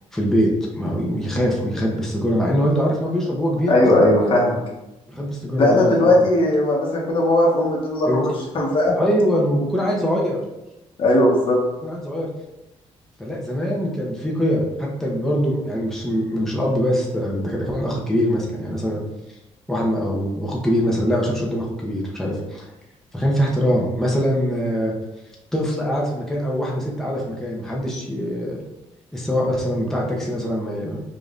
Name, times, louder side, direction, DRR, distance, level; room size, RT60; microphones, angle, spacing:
voice 1, 0.1-0.5 0.8-4.1 5.1-5.9 8.0-8.3 8.9-10.4 11.8-12.3 13.2-19.0 19.7-22.7 23.1-24.9 25.5-28.6 29.1-31.0, equal, 5° left, -3 dB, 0.7 m, -23 dB
voice 2, 3.7-4.6 5.6-8.9 11.0-11.6, left 1 dB, 50° left, -2 dB, 1.1 m, -18 dB
5.1 x 2.5 x 2.5 m, 0.97 s
cardioid pair, 125°, 11 cm